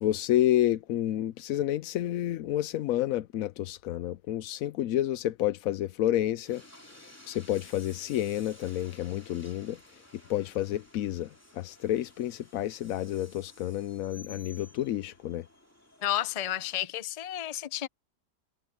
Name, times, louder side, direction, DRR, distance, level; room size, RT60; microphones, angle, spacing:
voice 1, 0.0-6.6 7.3-9.8 10.3-15.4, left 13 dB, 70° left, 0.9 m, -29 dB
Train, 6.4-16.8, left 1 dB, 10° left, 2.8 m, -54 dB
voice 2, 16.0-17.9, left 12 dB, 45° left, 0.4 m, -31 dB
omnidirectional pair, 1.8 m